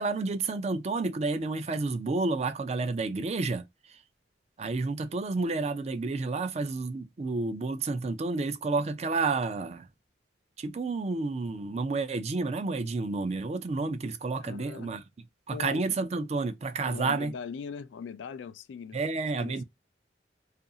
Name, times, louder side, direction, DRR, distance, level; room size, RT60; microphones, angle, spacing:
voice 1, 0.0-3.7 4.6-9.9 10.6-15.0 15.5-17.3 18.9-19.6, right 3 dB, 35° right, 0.4 m, -30 dB
voice 2, 14.4-14.9 15.5-16.0 16.8-19.0 19.3-19.6, left 6 dB, 90° left, 0.3 m, -41 dB
2.5 x 2.3 x 2.6 m
head